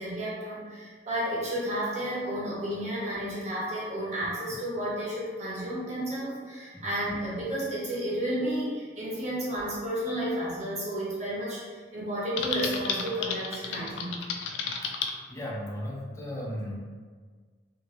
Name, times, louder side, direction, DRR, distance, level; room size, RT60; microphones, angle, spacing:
voice 1, 0.0-14.3, right 1 dB, 40° right, -7 dB, 0.9 m, -32 dB
Typing, 12.4-15.1, left 5 dB, 85° left, 0.3 m, -32 dB
voice 2, 15.3-16.7, equal, 15° left, -4 dB, 0.4 m, -36 dB
2.5 x 2.5 x 3.0 m, 1.5 s
head